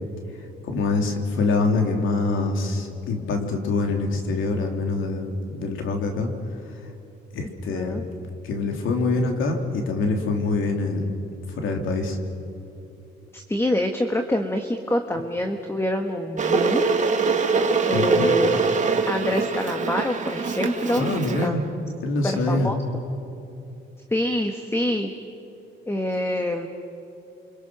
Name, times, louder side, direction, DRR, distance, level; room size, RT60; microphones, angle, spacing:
voice 1, 0.6-6.3 7.3-8.0 8.4-11.1 11.5-12.2 17.9-18.3 21.0-21.6 22.0-22.7, left 3 dB, 80° left, 3 dB, 3.2 m, -25 dB
voice 2, 7.7-8.0 13.3-16.8 17.4-18.6 19.1-21.1 21.4-21.6 22.2-22.8 24.1-25.1 25.9-26.7, left 1 dB, 10° left, 5 dB, 1.6 m, -26 dB
Water / Boiling, 16.4-21.5, right 4 dB, 40° right, 2.1 m, -23 dB
29.0 x 25.0 x 6.2 m, 2.7 s
cardioid pair, 90°, 20 cm